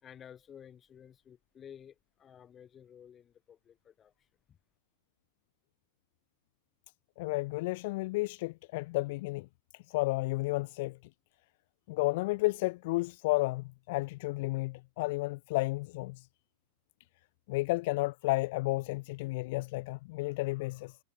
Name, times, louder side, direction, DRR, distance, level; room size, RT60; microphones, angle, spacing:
voice 1, 0.0-4.1 4.5-4.6, left 8 dB, 25° left, 4.4 m, -53 dB
voice 2, 7.2-9.5 9.7-11.0 11.9-16.3 17.5-21.0, left 22 dB, 50° left, 1.4 m, -32 dB
figure-of-eight pair, 90°, 0 cm